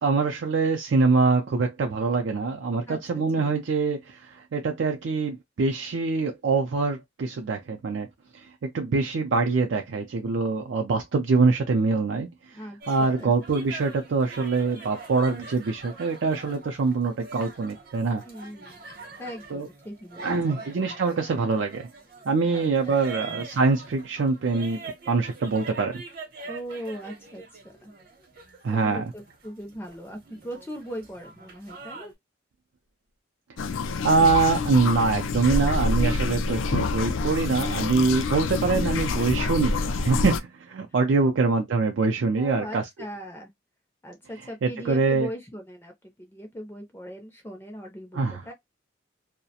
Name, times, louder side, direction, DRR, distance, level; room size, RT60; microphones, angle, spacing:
voice 1, 0.0-8.1 8.3-12.3 12.9-18.2 19.5-19.7 20.2-21.9 22.3-24.8 25.1-26.0 28.6-29.0 34.0-42.8 44.6-45.3 48.1-48.4, right 4 dB, 75° right, 0.4 m, -24 dB
voice 2, 2.9-3.5 12.5-13.3 18.2-18.8 19.2-20.8 22.4-23.4 26.5-27.4 27.8-27.9 28.7-32.1 42.4-43.5 44.0-45.9 46.2-48.5, equal, 10° left, 0.4 m, -39 dB
sound 1, 12.8-32.1, right 3 dB, 50° right, 0.8 m, -44 dB
sound 2, 33.6-40.4, left 3 dB, 90° left, 0.4 m, -27 dB
2.3 x 2.1 x 2.7 m
head